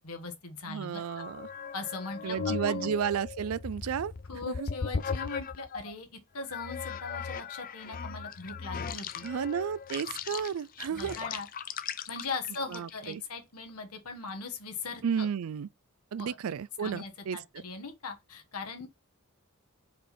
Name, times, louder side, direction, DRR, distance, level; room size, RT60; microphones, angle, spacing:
voice 1, 0.0-1.3 1.7-2.9 4.3-6.1 6.3-9.3 10.9-11.5 12.1-15.3 16.2-16.4 16.8-18.9, left 4 dB, 90° left, 1.6 m, -40 dB
voice 2, 0.7-1.5 2.2-4.1 4.5-4.7 9.2-11.2 12.7-13.2 15.0-15.7 16.1-17.4, right 7 dB, 70° right, 0.4 m, -32 dB
sound 1, 1.0-5.9 6.5-13.1, left 6 dB, 40° left, 0.4 m, -38 dB
5.2 x 4.2 x 4.4 m
head